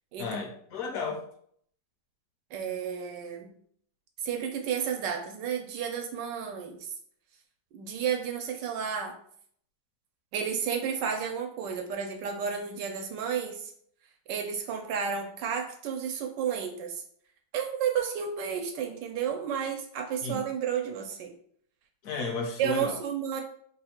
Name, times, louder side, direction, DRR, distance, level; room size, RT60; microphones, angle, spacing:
voice 1, 0.2-1.2 20.2-20.4 22.0-23.0, left 4 dB, 60° left, 3 dB, 1.0 m, -33 dB
voice 2, 2.5-3.5 4.2-6.9 7.7-9.2 10.3-13.7 14.3-17.0 17.5-21.3 22.6-23.4, right 7 dB, 75° right, 4 dB, 1.3 m, -32 dB
3.4 x 2.4 x 4.3 m, 0.62 s
omnidirectional pair, 2.0 m